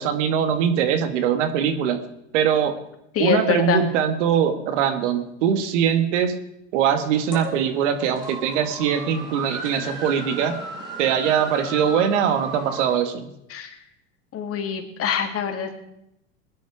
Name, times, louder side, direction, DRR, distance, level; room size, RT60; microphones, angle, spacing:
voice 1, 0.0-2.0 2.3-2.7 3.2-6.4 6.7-10.6 11.0-13.3, right 8 dB, 70° right, 8 dB, 2.0 m, -22 dB
voice 2, 3.1-3.8 13.5-13.8 14.3-15.7, left 8 dB, 40° left, 4 dB, 2.7 m, -24 dB
sound 1, 7.0-13.0, right 1 dB, 15° right, 5.7 m, -36 dB
20.5 x 10.5 x 4.9 m, 0.79 s
hypercardioid pair, 100°, 37 cm